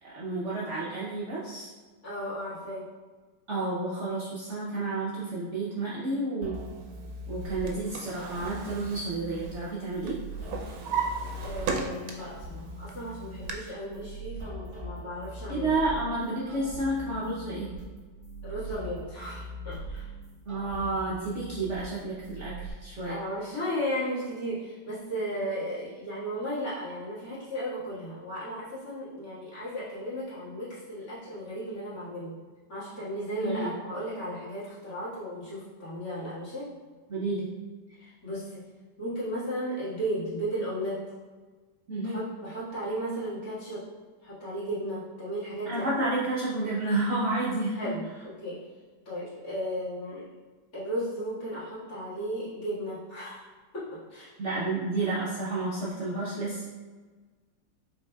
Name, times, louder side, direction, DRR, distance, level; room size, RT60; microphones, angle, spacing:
voice 1, 0.0-1.7 3.5-6.6 7.3-10.2 15.5-17.7 20.5-23.2 33.4-33.7 37.1-37.5 41.9-42.2 45.6-48.0 54.4-56.7, right 2 dB, 60° right, -7 dB, 0.8 m, -30 dB
voice 2, 2.0-2.8 11.4-15.7 18.4-20.1 23.0-32.3 32.7-36.7 38.0-38.6 39.0-41.0 42.0-43.8 44.2-45.9 47.8-48.6 49.1-50.3 50.7-53.5 53.7-54.3, equal, 55° left, -10 dB, 2.1 m, -35 dB
sound 1, 6.4-22.7, right 1 dB, 25° right, 0.6 m, -41 dB
Drawer open or close, 7.3-9.8 10.1-12.4 12.8-13.5, right 5 dB, 90° right, 1.3 m, -35 dB
5.3 x 3.9 x 2.3 m, 1.4 s
omnidirectional pair, 1.8 m